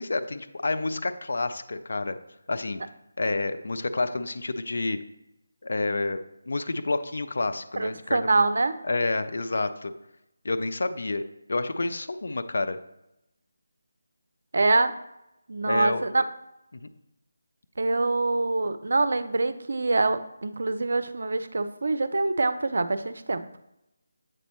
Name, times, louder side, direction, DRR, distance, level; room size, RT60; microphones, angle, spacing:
voice 1, 0.0-2.2 2.5-2.8 3.2-5.0 5.6-6.2 6.5-8.4 8.9-9.9 10.4-11.2 11.5-12.8 15.6-16.0 16.7-16.8, left 2 dB, 55° left, 9 dB, 0.4 m, -29 dB
voice 2, 7.8-8.8 14.5-14.9 15.5-16.2 17.8-23.5, right 3 dB, 55° right, 12 dB, 0.4 m, -25 dB
7.7 x 4.0 x 3.1 m, 0.87 s
figure-of-eight pair, 155°, 0 cm